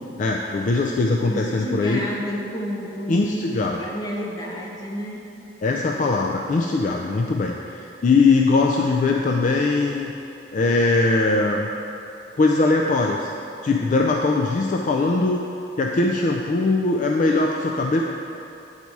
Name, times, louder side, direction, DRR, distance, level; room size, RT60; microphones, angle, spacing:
voice 1, 0.2-2.0 3.1-3.8 5.6-10.1 10.5-11.7 12.4-13.3 13.6-15.4 15.8-18.0, left 3 dB, 45° left, 1 dB, 0.3 m, -21 dB
voice 2, 1.3-5.3, equal, 20° left, -3 dB, 0.9 m, -30 dB
8.5 x 4.1 x 4.6 m, 2.9 s
head